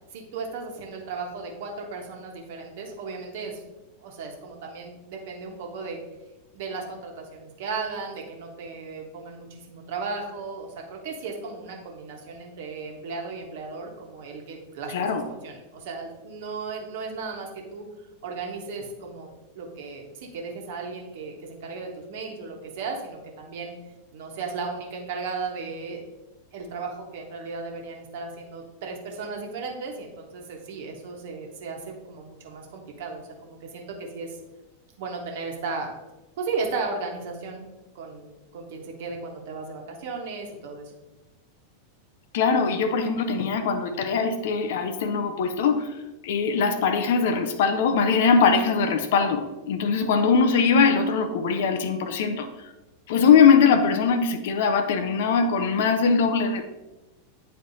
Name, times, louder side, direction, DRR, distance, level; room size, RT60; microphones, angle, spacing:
voice 1, 0.1-3.6 4.0-6.0 6.5-17.9 18.2-19.3 19.5-23.7 24.1-26.0 26.5-34.4 35.0-35.9 36.4-37.7 37.9-40.9, right 4 dB, 55° right, 1 dB, 1.3 m, -35 dB
voice 2, 14.9-15.2 42.3-46.0 46.2-52.7 53.1-56.7, left 5 dB, 55° left, 8 dB, 0.6 m, -21 dB
9.4 x 4.3 x 2.8 m, 1.1 s
figure-of-eight pair, 90°, 0 cm